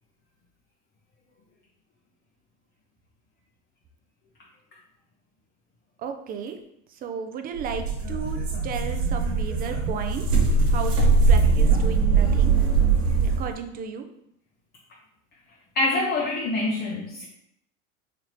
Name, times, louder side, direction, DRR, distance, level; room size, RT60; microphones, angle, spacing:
voice 1, 6.0-6.6 6.9-10.4 10.7-12.5 13.4-14.1, right 6 dB, 25° right, 6 dB, 0.3 m, -34 dB
sound 1, 7.5-13.5, right 4 dB, 75° right, 1.3 m, -21 dB
voice 2, 15.7-17.3, left 2 dB, 25° left, -2 dB, 0.6 m, -25 dB
4.1 x 2.8 x 3.0 m, 0.76 s
supercardioid pair, 105°, 39 cm